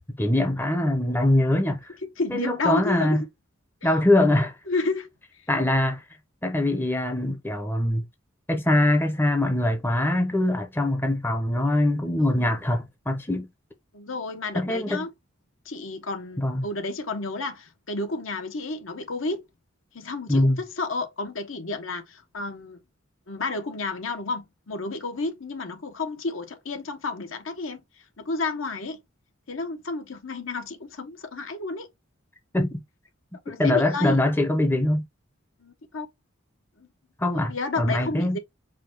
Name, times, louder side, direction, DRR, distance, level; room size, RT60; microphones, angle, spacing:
voice 1, 0.2-1.8 2.3-3.2 3.8-4.6 5.5-6.0 6.4-8.0 8.5-13.5 14.5-15.0 16.4-16.6 20.3-20.6 32.5-32.8 33.5-35.0 37.2-38.4, left 1 dB, 10° left, 0.7 m, -23 dB
voice 2, 2.2-3.2 4.7-5.1 5.3-5.5 12.2-12.5 13.9-15.1 15.6-19.4 19.9-22.8 23.3-27.8 28.2-29.0 29.5-31.9 33.4-34.2 35.6-36.1 36.8-36.9 37.5-38.4, left 3 dB, 70° left, 1.1 m, -31 dB
4.9 x 2.2 x 4.6 m
head